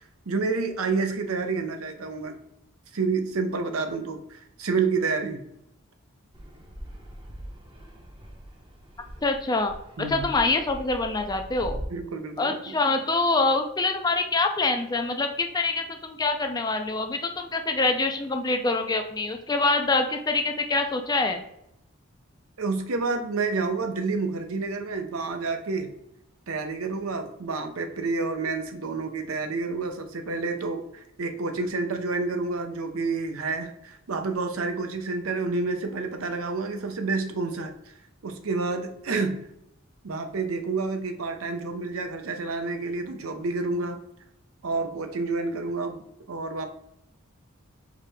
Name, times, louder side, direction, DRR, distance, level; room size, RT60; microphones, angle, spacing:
voice 1, 0.3-2.4 2.9-5.4 10.0-10.3 11.9-12.8 22.6-25.9 26.5-37.7 38.2-39.4 40.0-44.0 44.6-46.7, right 3 dB, 85° right, 6 dB, 0.7 m, -29 dB
Fixed-wing aircraft airplane, 6.3-11.8, equal, 25° right, 0.7 m, -41 dB
voice 2, 9.2-9.7 10.1-11.8 12.4-21.4, left 3 dB, 20° left, 5 dB, 0.4 m, -25 dB
4.8 x 2.8 x 3.4 m, 0.80 s
head